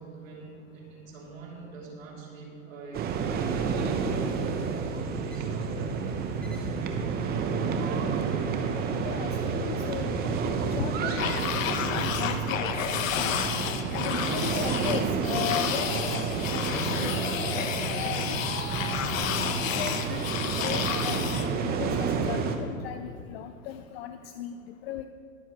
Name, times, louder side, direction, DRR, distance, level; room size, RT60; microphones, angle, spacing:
voice 1, 0.0-6.9, right 3 dB, 70° right, -3 dB, 3.1 m, -45 dB
sound 1, 2.9-22.6, right 5 dB, 25° right, 0.8 m, -30 dB
sound 2, 3.7-9.1, equal, 5° left, 1.5 m, -50 dB
voice 2, 9.0-11.6 12.0-13.4 13.9-16.2 16.5-17.4 18.0-18.5 19.6-25.1, left 10 dB, 50° left, 9 dB, 0.5 m, -37 dB
sound 3, 11.2-21.5, left 8 dB, 70° left, 1.1 m, -31 dB
21.5 x 7.3 x 3.1 m, 2.4 s
hypercardioid pair, 120°, 41 cm